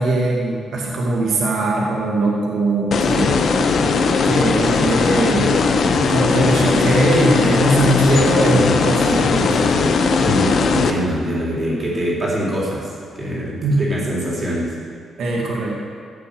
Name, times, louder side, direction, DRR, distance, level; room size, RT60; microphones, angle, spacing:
voice 1, 0.0-3.4 4.2-5.5 6.1-9.9 13.6-13.8 15.2-15.8, right 2 dB, 70° right, -2 dB, 2.0 m, -20 dB
sound 1, 2.9-10.9, left 4 dB, 55° left, 0.9 m, -18 dB
voice 2, 10.1-14.7, equal, 30° right, -4 dB, 3.7 m, -24 dB
15.5 x 6.8 x 7.0 m, 2.1 s
cardioid pair, 145°, 0 cm